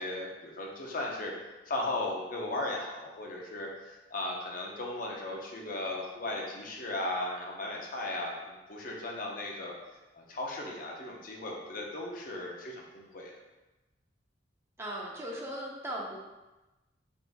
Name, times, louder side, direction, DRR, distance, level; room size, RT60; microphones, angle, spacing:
voice 1, 0.0-1.3 1.7-9.8 10.1-13.3, left 2 dB, 50° left, -1 dB, 0.6 m, -36 dB
voice 2, 14.8-16.2, right 1 dB, 15° right, -3 dB, 0.5 m, -38 dB
3.6 x 2.5 x 4.0 m, 1.1 s
head